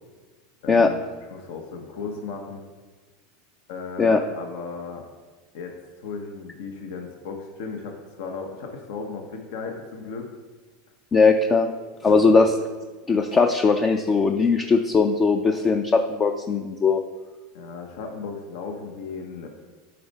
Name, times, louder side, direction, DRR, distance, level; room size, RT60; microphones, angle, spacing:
voice 1, 0.6-2.6 3.7-5.0 5.5-10.3 12.0-12.4 17.5-19.5, left 4 dB, 70° left, 3 dB, 1.0 m, -36 dB
voice 2, 11.1-11.7 12.0-12.5 13.1-17.0, left 4 dB, 25° left, 5 dB, 0.4 m, -19 dB
8.6 x 4.3 x 4.1 m, 1.4 s
supercardioid pair, 120°, 0 cm